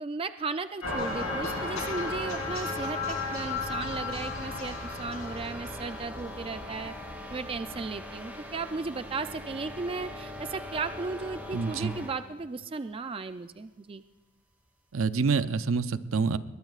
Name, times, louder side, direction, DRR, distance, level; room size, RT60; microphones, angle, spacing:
voice 1, 0.0-6.9 7.3-14.0, right 4 dB, 25° right, 10 dB, 0.3 m, -35 dB
sound 1, 0.8-7.8, left 3 dB, 70° left, 3.6 m, -35 dB
sound 2, 0.9-12.2, left 1 dB, 10° right, 2.9 m, -42 dB
voice 2, 11.5-11.9 14.9-16.4, right 4 dB, 70° right, 13 dB, 0.6 m, -27 dB
22.5 x 20.0 x 2.4 m, 1.3 s
head